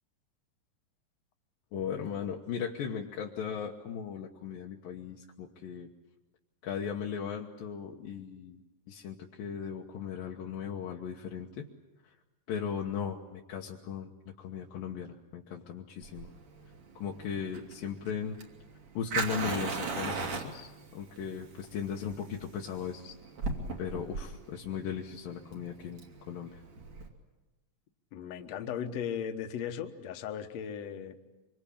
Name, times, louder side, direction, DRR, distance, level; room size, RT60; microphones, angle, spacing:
voice 1, 1.7-5.9 6.6-8.6 8.9-11.7 12.0-12.1 12.5-14.1 14.4-16.3 17.0-18.4 18.9-23.1 23.8-26.0 26.3-26.6, left 7 dB, 80° left, 0 dB, 3.0 m, -37 dB
Fire, 16.0-27.1, right 4 dB, 55° right, 3.8 m, -37 dB
voice 2, 28.1-31.2, left 8 dB, 60° left, 7 dB, 2.2 m, -37 dB
25.5 x 25.0 x 8.7 m, 1.1 s
omnidirectional pair, 4.0 m